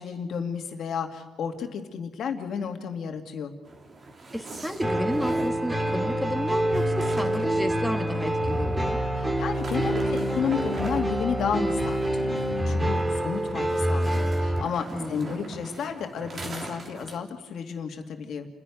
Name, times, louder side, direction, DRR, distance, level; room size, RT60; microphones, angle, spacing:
voice 1, 0.0-3.5 9.2-18.5, left 7 dB, 65° left, 5 dB, 2.4 m, -32 dB
sound 1, 3.6-17.2, right 3 dB, 45° right, 3.1 m, -42 dB
voice 2, 4.3-9.0 14.9-15.8, equal, ahead, 5 dB, 2.4 m, -32 dB
sound 2, 4.8-14.6, right 1 dB, 20° right, 2.7 m, -26 dB
29.0 x 11.0 x 9.3 m, 1.2 s
cardioid pair, 90°, 0 cm